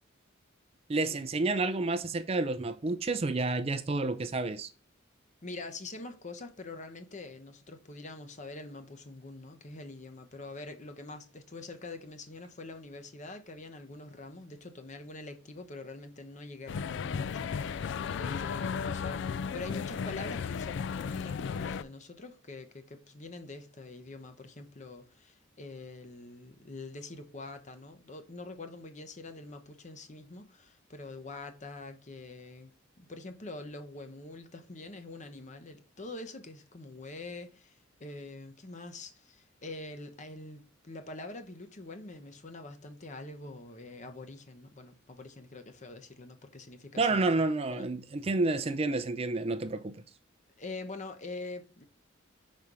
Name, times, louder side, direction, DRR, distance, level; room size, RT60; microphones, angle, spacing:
voice 1, 0.9-4.7 47.0-50.0, right 3 dB, 30° right, 0.4 m, -30 dB
voice 2, 5.4-47.9 50.6-51.8, left 2 dB, 35° left, 0.8 m, -45 dB
sound 1, 16.7-21.8, left 6 dB, 65° left, 0.3 m, -34 dB
5.2 x 4.3 x 4.8 m
head